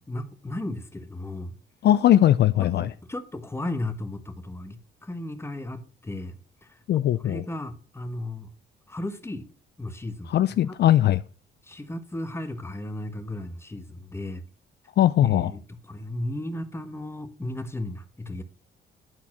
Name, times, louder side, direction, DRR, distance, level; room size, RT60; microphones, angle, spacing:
voice 1, 0.0-1.6 2.8-6.8 7.2-8.5 8.9-9.5 9.8-10.3 10.7-10.8 11.6-14.4 15.2-15.6 15.9-18.4, left 1 dB, 10° left, 1.1 m, -35 dB
voice 2, 1.8-2.9 6.9-7.4 10.3-11.2 15.0-15.5, left 12 dB, 60° left, 0.4 m, -20 dB
11.0 x 4.2 x 5.9 m
cardioid pair, 90°, 20 cm